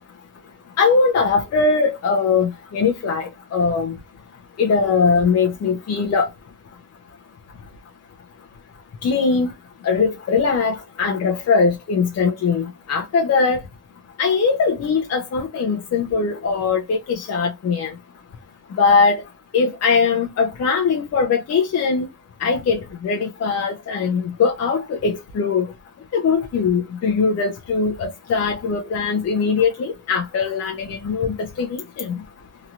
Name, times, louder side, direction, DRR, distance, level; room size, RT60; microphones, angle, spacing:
voice 1, 0.8-3.9 4.6-6.3 9.0-9.5 9.8-13.6 14.2-17.9 18.8-19.2 19.5-22.1 22.4-25.7 26.1-32.2, left 5 dB, 50° left, 0.7 m, -20 dB
3.0 x 2.8 x 2.3 m
cardioid pair, 115°, 32 cm